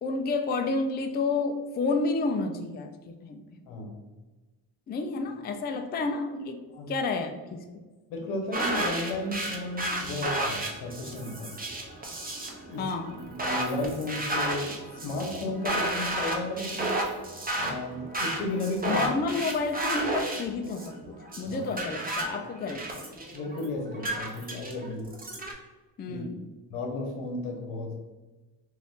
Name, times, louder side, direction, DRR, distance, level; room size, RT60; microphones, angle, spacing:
voice 1, 0.0-3.4 4.9-6.6 6.9-7.8 12.8-13.2 18.9-23.0 26.0-26.5, left 3 dB, 25° left, 6 dB, 0.3 m, -30 dB
voice 2, 3.7-4.0 6.7-6.9 8.1-11.6 12.6-12.9 13.2-17.0 17.6-19.1 21.5-21.6 23.3-25.1 26.1-26.2 26.7-27.9, left 2 dB, 90° left, 1 dB, 0.8 m, -34 dB
sound 1, 8.5-25.5, right 1 dB, 20° right, 0.8 m, -32 dB
2.6 x 2.5 x 3.5 m, 1.2 s
supercardioid pair, 60°, 48 cm